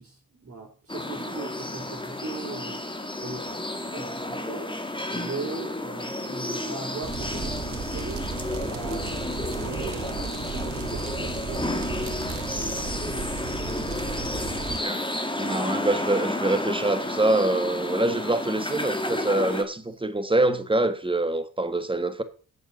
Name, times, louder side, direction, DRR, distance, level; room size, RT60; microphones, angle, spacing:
voice 1, 0.0-4.7 5.1-8.2 8.6-12.4, right 4 dB, 45° right, 3.1 m, -39 dB
sound 1, 0.9-19.6, left 1 dB, 15° left, 2.1 m, -31 dB
sound 2, 7.0-14.8, right 6 dB, 80° right, 2.0 m, -35 dB
voice 2, 15.4-22.2, right 2 dB, 15° right, 1.5 m, -25 dB
8.3 x 7.2 x 6.8 m
supercardioid pair, 55°, 33 cm